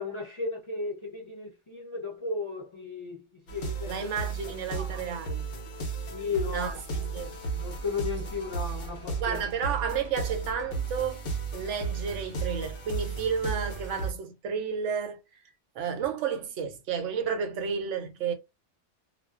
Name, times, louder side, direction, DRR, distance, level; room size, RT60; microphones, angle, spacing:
voice 1, 0.0-4.1 4.4-5.0 6.1-6.8 7.6-9.4, left 4 dB, 40° left, 0.4 m, -35 dB
sound 1, 3.5-14.1, right 4 dB, 60° left, 0.9 m, -34 dB
voice 2, 3.9-5.5 6.5-7.4 9.2-11.2 11.5-15.2 15.8-18.3, right 6 dB, 85° right, 0.9 m, -31 dB
2.4 x 2.2 x 2.3 m
omnidirectional pair, 1.2 m